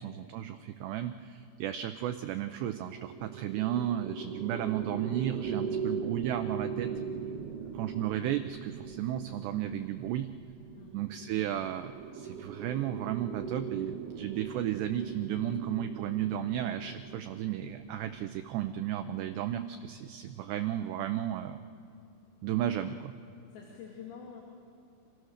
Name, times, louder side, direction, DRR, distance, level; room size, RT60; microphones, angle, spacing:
voice 1, 0.0-6.9 7.7-10.3 10.9-21.6 22.4-23.1, right 11 dB, 85° right, 8 dB, 2.4 m, -34 dB
sound 1, 2.6-20.0, right 6 dB, 65° right, 2.1 m, -40 dB
voice 2, 7.4-7.8 10.7-11.0 22.6-22.7 23.5-24.4, left 7 dB, 85° left, -1 dB, 5.5 m, -48 dB
30.0 x 27.5 x 6.6 m, 2.6 s
omnidirectional pair, 5.8 m